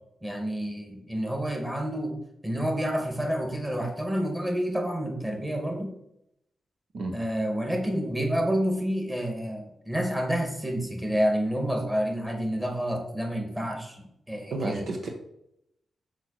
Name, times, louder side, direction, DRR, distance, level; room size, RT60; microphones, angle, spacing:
voice 1, 0.2-2.1 2.4-5.9 7.1-14.8, equal, 15° right, 2 dB, 2.3 m, -29 dB
voice 2, 14.5-15.1, right 2 dB, 70° right, 3 dB, 1.0 m, -31 dB
5.9 x 5.0 x 4.3 m, 0.79 s
cardioid pair, 50°, 0 cm